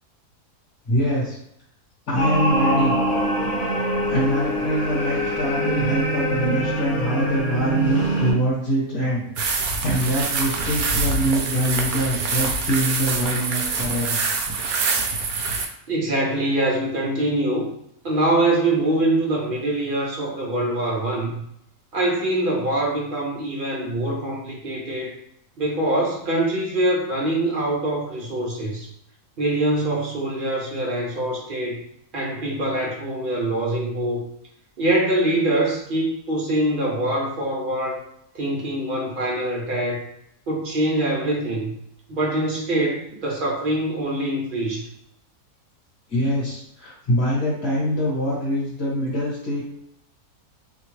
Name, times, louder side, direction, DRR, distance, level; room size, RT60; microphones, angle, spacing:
voice 1, 0.9-1.4 2.1-3.0 4.0-9.2 9.5-14.2 46.1-49.6, equal, 45° left, -8 dB, 1.2 m, -24 dB
sound 1, 2.2-8.3, right 1 dB, 70° left, 1.4 m, -23 dB
sound 2, 9.4-15.7, right 4 dB, 70° right, 1.0 m, -25 dB
voice 2, 15.9-17.7 18.0-21.4 21.9-25.1 25.6-28.9 29.4-31.8 32.1-34.2 34.8-38.0 38.3-40.0 40.5-41.7 42.1-44.9, right 1 dB, 55° right, -3 dB, 0.6 m, -24 dB
2.9 x 2.3 x 3.0 m, 0.73 s
omnidirectional pair, 1.7 m